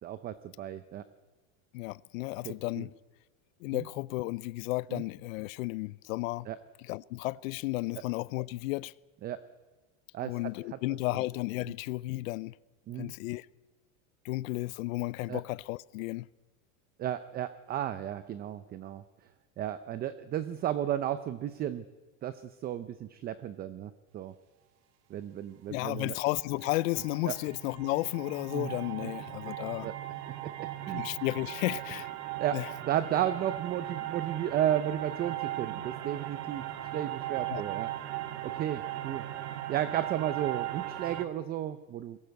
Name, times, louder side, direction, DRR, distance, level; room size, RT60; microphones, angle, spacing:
voice 1, 0.0-1.0 2.4-2.9 3.7-3.8 4.9-5.0 6.5-6.6 9.2-9.4 10.1-10.3 12.9-13.1 15.3-15.4 17.0-19.0 19.6-21.8 22.2-24.3 25.1-26.1 27.3-27.4 28.5-28.7 29.8-29.9 30.4-31.0 32.4-32.6 32.9-36.6 36.9-37.9 38.4-39.2 39.7-42.2, right 11 dB, 25° right, 0.6 m, -33 dB
voice 2, 1.7-2.9 3.6-6.5 6.8-8.9 10.2-12.5 13.0-13.5 14.2-16.3 25.7-29.9 30.9-32.1 32.5-32.7 37.5-37.6, left 20 dB, 90° left, 0.6 m, -33 dB
sound 1, 25.9-41.3, right 14 dB, 40° right, 1.3 m, -38 dB
21.5 x 17.0 x 8.0 m
supercardioid pair, 155°, 39 cm